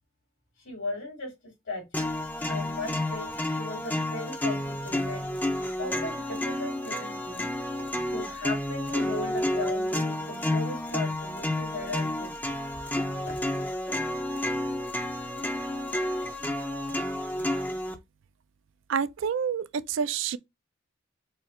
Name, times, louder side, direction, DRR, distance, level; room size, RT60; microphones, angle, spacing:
voice 1, 0.6-1.3 1.7-2.1 2.5-5.2 5.8-7.5 8.1-12.6 13.3-13.4, left 2 dB, 80° left, 2.4 m, -37 dB
sound 1, 1.9-17.9, left 1 dB, 10° left, 0.4 m, -30 dB
voice 2, 18.9-20.4, right 7 dB, 65° right, 0.3 m, -28 dB
4.4 x 2.4 x 3.1 m
head